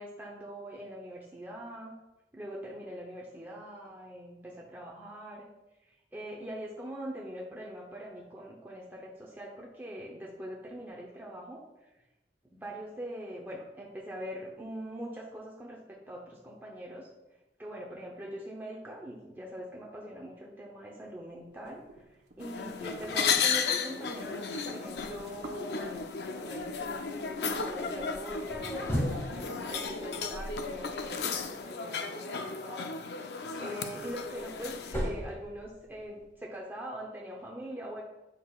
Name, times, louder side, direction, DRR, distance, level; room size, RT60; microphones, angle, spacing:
voice 1, 0.0-2.0 2.3-5.5 5.8-11.9 12.4-17.1 17.6-21.8 22.4-32.9 33.3-38.0, equal, 10° right, -3 dB, 0.7 m, -42 dB
sound 1, 21.5-28.6, right 2 dB, 70° right, 0.9 m, -48 dB
sound 2, 22.4-35.0, left 5 dB, 65° left, 0.6 m, -34 dB
sound 3, 28.3-31.4 33.7-36.2, equal, 15° left, 2.1 m, -37 dB
9.4 x 6.1 x 2.4 m, 1.0 s
head